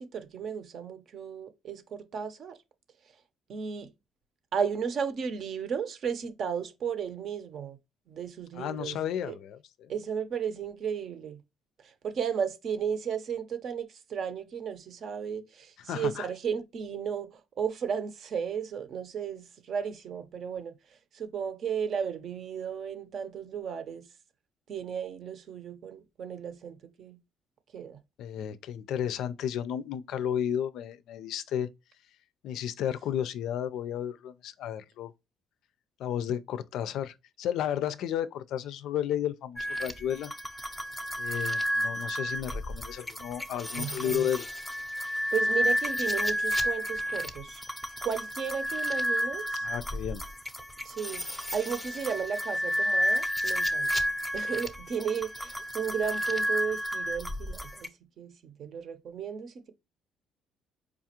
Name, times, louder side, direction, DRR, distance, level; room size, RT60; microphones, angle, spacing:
voice 1, 0.0-2.6 3.5-3.9 4.5-7.8 8.1-9.4 9.9-11.4 11.8-20.7 21.1-24.0 24.7-27.2 27.7-28.0 43.8-44.3 45.3-47.6 48.0-49.7 50.8-53.9 54.3-57.9 58.2-59.7, right 7 dB, 50° right, 0.6 m, -34 dB
voice 2, 8.5-9.9 15.9-16.3 28.2-31.7 32.4-35.1 36.0-40.3 41.2-44.5 49.6-50.2, left 9 dB, 75° left, 0.4 m, -33 dB
sound 1, 39.6-57.9, equal, 5° left, 0.5 m, -31 dB
4.9 x 2.4 x 2.8 m
cardioid pair, 125°, 0 cm